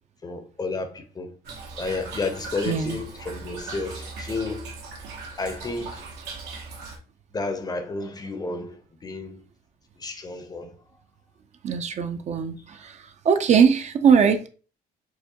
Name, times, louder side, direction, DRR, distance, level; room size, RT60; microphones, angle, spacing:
voice 1, 0.2-1.3 1.8-4.7 5.4-6.0 7.3-9.4 10.0-10.7, left 3 dB, 25° left, 0.6 m, -31 dB
Toilet flush / Trickle dribble, 1.4-7.0, right 4 dB, 80° right, 1.0 m, -39 dB
voice 2, 2.7-3.0 11.6-12.9 13.3-14.5, right 6 dB, 45° right, 0.4 m, -20 dB
4.6 x 2.1 x 2.8 m
cardioid pair, 110°, 17 cm